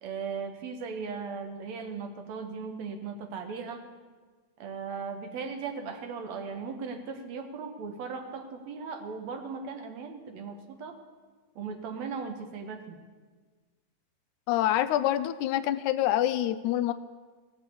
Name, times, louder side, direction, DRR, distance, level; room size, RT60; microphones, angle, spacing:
voice 1, 0.0-3.8 4.6-11.0 11.6-13.0, right 5 dB, 70° right, 6 dB, 2.1 m, -37 dB
voice 2, 14.5-16.9, left 13 dB, 80° left, 12 dB, 2.0 m, -26 dB
16.5 x 6.1 x 8.2 m, 1.4 s
omnidirectional pair, 3.5 m